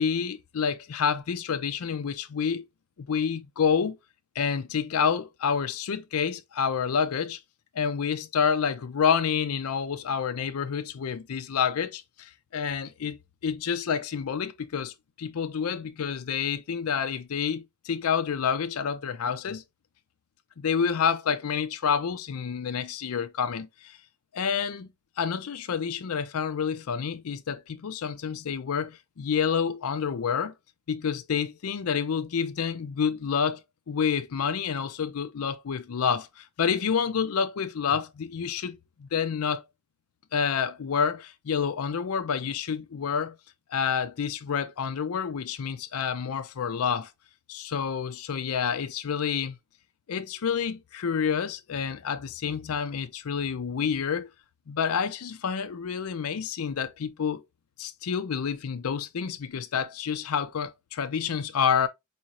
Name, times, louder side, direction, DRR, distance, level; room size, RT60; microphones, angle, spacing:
voice 1, 0.0-2.7 3.1-4.0 4.4-7.4 7.7-13.2 13.4-14.9 15.2-19.6 20.6-24.0 24.3-24.9 25.2-30.5 30.9-39.6 40.3-43.4 43.7-47.1 47.5-49.5 50.1-54.3 54.7-57.4 57.8-61.9, left 7 dB, 80° left, 0.5 m, -28 dB
4.8 x 2.6 x 2.8 m
head